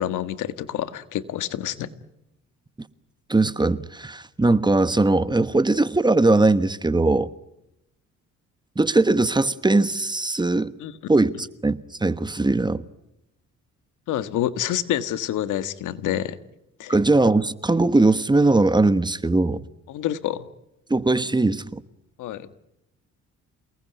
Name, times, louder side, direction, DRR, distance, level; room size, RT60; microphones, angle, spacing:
voice 1, 0.0-1.9 10.8-10.9 14.1-16.4 16.8-16.9 19.9-20.5 22.2-22.5, left 11 dB, 85° left, 1.6 m, -27 dB
voice 2, 3.3-7.3 8.8-10.7 11.1-12.8 16.9-19.6 20.9-21.8, right 2 dB, 15° right, 1.3 m, -20 dB
29.0 x 19.5 x 9.3 m
cardioid pair, 90°, 30 cm